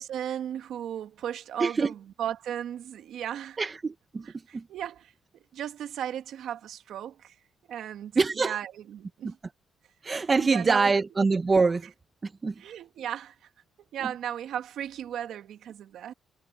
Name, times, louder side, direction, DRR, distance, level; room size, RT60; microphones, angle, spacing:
voice 1, 0.0-3.6 4.2-5.1 5.5-7.3 7.7-9.4 10.4-10.9 12.6-13.3 13.9-16.1, right 10 dB, 75° right, 1.7 m, -36 dB
voice 2, 1.6-1.9 3.6-4.2 4.5-4.6 8.2-8.6 9.2-9.3 10.0-11.9 12.2-12.5, right 4 dB, 30° right, 1.1 m, -24 dB
cardioid pair, 90°, 0 cm